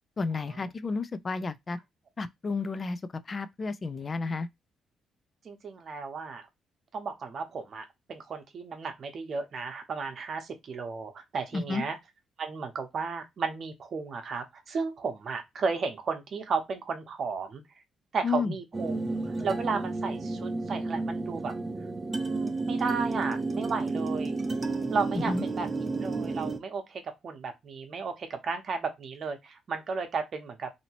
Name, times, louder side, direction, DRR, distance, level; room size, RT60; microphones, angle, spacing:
voice 1, 0.2-1.8 2.2-3.0 3.3-4.5 11.5-11.8 18.2-18.5 25.1-25.4, left 4 dB, 35° left, 0.4 m, -31 dB
voice 2, 5.4-6.5 6.9-12.0 12.4-17.6 18.1-19.0 19.3-21.5 22.1-24.3 24.9-25.7 26.0-30.7, right 4 dB, 55° right, 0.9 m, -34 dB
sound 1, 18.7-26.6, right 3 dB, 25° right, 0.6 m, -31 dB
2.9 x 2.7 x 2.8 m
cardioid pair, 90°, 0 cm